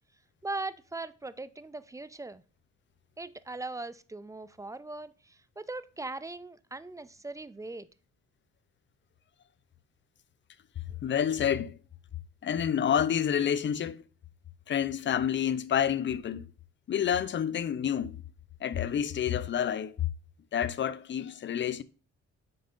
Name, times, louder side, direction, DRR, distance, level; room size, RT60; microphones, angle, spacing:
voice 1, 0.4-2.4 3.2-7.9, right 2 dB, 10° right, 0.3 m, -39 dB
voice 2, 11.0-11.8 12.4-14.0 14.7-16.5 16.9-18.2 18.6-19.9 20.5-21.8, left 9 dB, 40° left, 0.5 m, -28 dB
7.7 x 5.3 x 2.5 m
cardioid pair, 90°, 30 cm